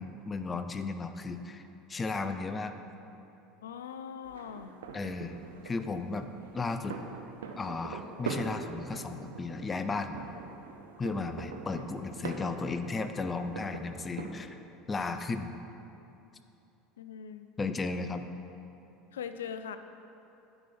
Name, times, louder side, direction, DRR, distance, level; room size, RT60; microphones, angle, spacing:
voice 1, 0.0-1.6 1.9-2.7 4.9-5.4 5.6-7.0 7.6-10.2 11.0-14.6 14.9-15.5 17.6-18.2, left 3 dB, 25° left, 9 dB, 0.5 m, -34 dB
voice 2, 3.6-4.7 17.0-17.5 19.1-19.8, left 7 dB, 85° left, 10 dB, 0.4 m, -40 dB
sound 1, 4.2-14.4, right 5 dB, 80° right, 0.5 m, -43 dB
9.8 x 4.7 x 4.3 m, 2.8 s
hypercardioid pair, 80°, 0 cm